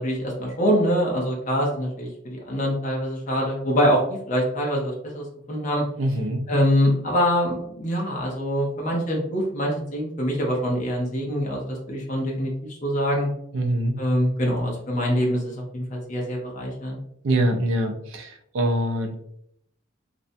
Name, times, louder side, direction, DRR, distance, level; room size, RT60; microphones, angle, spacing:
voice 1, 0.0-4.0 4.3-5.8 6.5-12.5 12.8-13.3 14.0-17.0, equal, 40° left, -2 dB, 0.6 m, -24 dB
voice 2, 6.0-6.5 13.5-14.0 17.2-19.1, right 1 dB, 80° right, 3 dB, 0.4 m, -24 dB
2.6 x 2.1 x 2.6 m, 0.72 s
head